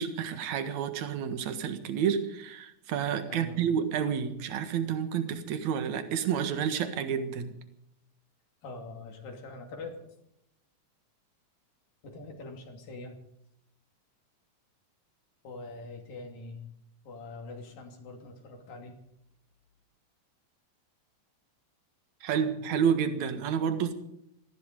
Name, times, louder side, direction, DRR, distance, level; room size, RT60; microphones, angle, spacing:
voice 1, 0.0-7.5 22.2-23.9, right 7 dB, 60° right, 2.7 m, -30 dB
voice 2, 3.2-3.6 8.6-10.1 12.0-13.2 15.4-16.7 17.0-19.0, left 3 dB, 75° left, 4.4 m, -43 dB
19.0 x 14.5 x 5.2 m
omnidirectional pair, 4.0 m